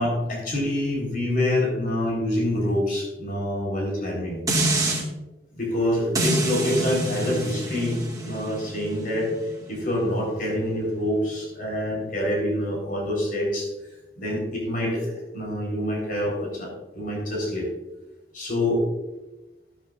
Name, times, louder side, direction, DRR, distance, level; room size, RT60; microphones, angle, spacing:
voice 1, 0.0-4.4 5.5-9.3 9.7-13.7 14.2-17.7 18.3-18.8, left 1 dB, 55° left, -1 dB, 4.0 m, -26 dB
sound 1, 4.5-5.0 6.1-11.3 11.7-11.8, right 2 dB, 20° right, 1.8 m, -28 dB
13.0 x 11.0 x 2.5 m, 1.0 s
head